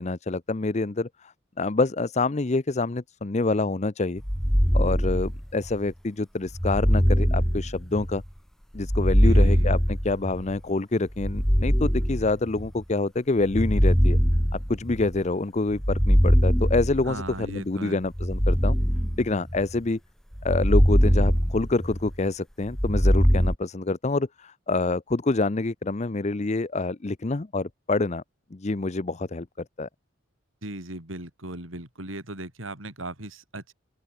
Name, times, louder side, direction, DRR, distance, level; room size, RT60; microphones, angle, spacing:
voice 1, 0.0-4.2 4.7-8.2 8.7-14.2 14.5-18.8 19.2-20.0 20.4-28.2 28.5-29.5 29.8-29.9, left 3 dB, 35° left, 0.7 m, -27 dB
sound 1, 4.2-5.7 6.5-8.2 8.8-10.6 11.2-12.7 13.4-15.2 15.7-17.4 18.1-19.8 20.4-22.2 22.7-23.5, equal, ahead, 0.9 m, -22 dB
voice 2, 9.2-9.7 17.0-18.0 30.6-33.7, right 2 dB, 90° right, 5.3 m, -37 dB
open air
head